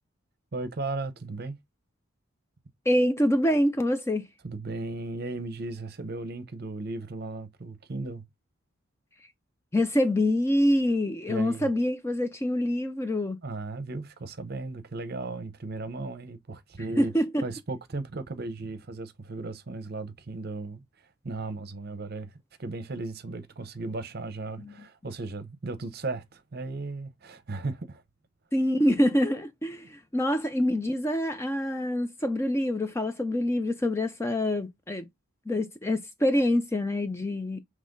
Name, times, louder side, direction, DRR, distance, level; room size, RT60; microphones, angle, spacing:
voice 1, 0.5-1.6 4.4-8.2 11.3-11.7 13.4-17.1 17.4-20.8 21.2-28.0, right 3 dB, 45° right, 0.7 m, -36 dB
voice 2, 2.9-4.3 9.7-13.4 17.0-17.4 24.6-24.7 28.5-35.1 35.5-37.6, left 1 dB, 10° left, 0.4 m, -26 dB
5.4 x 3.1 x 2.5 m
head